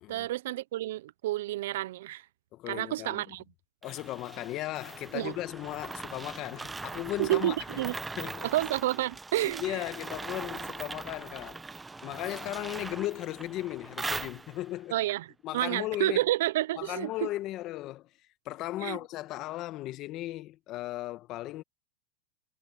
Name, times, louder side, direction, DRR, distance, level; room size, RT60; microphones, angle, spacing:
voice 1, 0.1-2.2 2.7-3.4 5.1-5.4 7.2-7.9 8.4-9.8 14.9-17.3 18.8-19.0, right 15 dB, 70° right, 0.7 m, -30 dB
voice 2, 2.5-3.4 3.8-7.6 8.2-8.5 9.4-11.6 12.0-15.0 15.4-16.2 16.8-18.1 18.4-21.6, left 16 dB, 40° left, 1.5 m, -36 dB
sound 1, 3.8-14.8, right 3 dB, 10° right, 1.0 m, -41 dB
hypercardioid pair, 130°, 0 cm